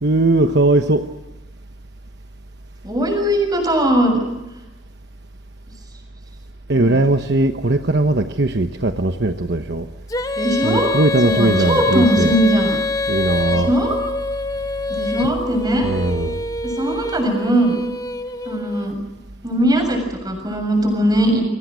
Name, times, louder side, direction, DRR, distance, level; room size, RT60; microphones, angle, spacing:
voice 1, 0.0-1.0 6.7-9.9 10.5-12.4 13.1-13.7 15.2-15.3 15.8-16.4, right 2 dB, 55° right, 7 dB, 1.1 m, -18 dB
voice 2, 2.8-4.2 6.7-7.0 10.4-10.9 11.2-12.8 13.5-13.9 14.9-15.9 16.6-17.8 18.5-19.0 19.4-21.4, right 1 dB, 20° right, 4 dB, 7.0 m, -19 dB
Female singing, 10.1-18.9, left 3 dB, 20° left, 1.0 m, -25 dB
30.0 x 24.0 x 6.4 m, 0.97 s
head